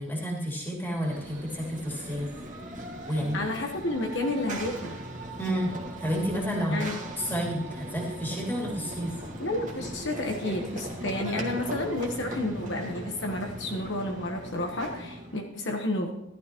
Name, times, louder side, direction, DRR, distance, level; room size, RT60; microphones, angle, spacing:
voice 1, 0.0-2.3 3.1-3.4 5.4-6.8 7.2-9.1, equal, 10° left, -2 dB, 2.6 m, -30 dB
Run / Train, 0.9-15.4, right 1 dB, 35° right, 1.8 m, -39 dB
voice 2, 3.1-4.9 6.7-7.0 9.4-16.1, left 1 dB, 55° left, 2 dB, 1.2 m, -31 dB
14.0 x 12.5 x 3.1 m, 0.94 s
head